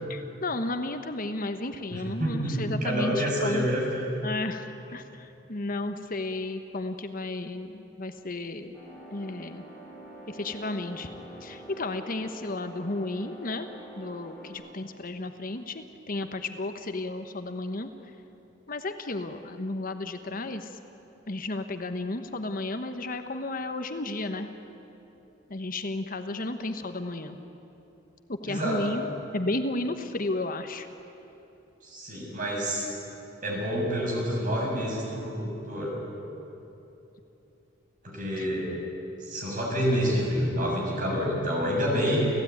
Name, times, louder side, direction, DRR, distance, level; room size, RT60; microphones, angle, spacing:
voice 1, 0.1-3.7 4.2-4.7 4.9-8.7 9.1-9.6 10.3-11.1 11.4-13.7 14.0-17.9 18.7-20.8 21.3-24.5 25.5-27.4 28.3-29.1 29.3-30.9 38.4-38.5, left 2 dB, 45° left, 8 dB, 1.1 m, -33 dB
voice 2, 1.9-4.1 28.5-29.0 31.8-32.9 33.4-35.9 38.0-38.8 39.2-42.3, equal, 45° right, -2 dB, 6.8 m, -28 dB
sound 1, 8.7-14.5, right 1 dB, 10° left, 7.5 m, -46 dB
29.0 x 16.0 x 9.5 m, 3.0 s
head